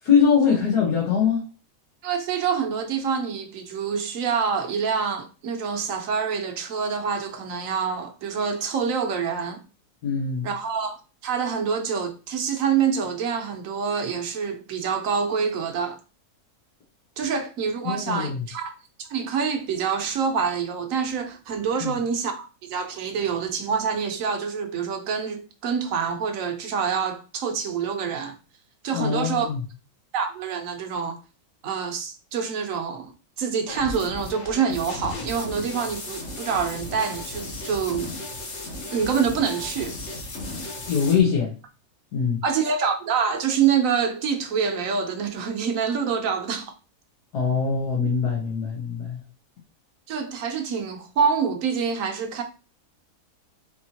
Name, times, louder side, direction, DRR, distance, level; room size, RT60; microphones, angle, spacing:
voice 1, 0.0-1.5 10.0-10.5 17.8-18.5 21.8-22.0 28.9-29.6 40.9-41.5 42.1-42.4 47.3-49.2, left 6 dB, 85° left, 1.7 m, -22 dB
voice 2, 2.0-9.6 10.4-11.0 11.2-16.0 17.2-18.7 19.0-28.4 28.8-29.5 30.1-31.2 31.6-33.1 33.4-38.1 38.9-40.0 42.4-46.7 50.1-52.4, right 6 dB, 65° right, 1.1 m, -26 dB
sound 1, 33.7-41.2, left 2 dB, 50° left, 1.2 m, -35 dB
4.5 x 2.9 x 2.8 m
omnidirectional pair, 1.6 m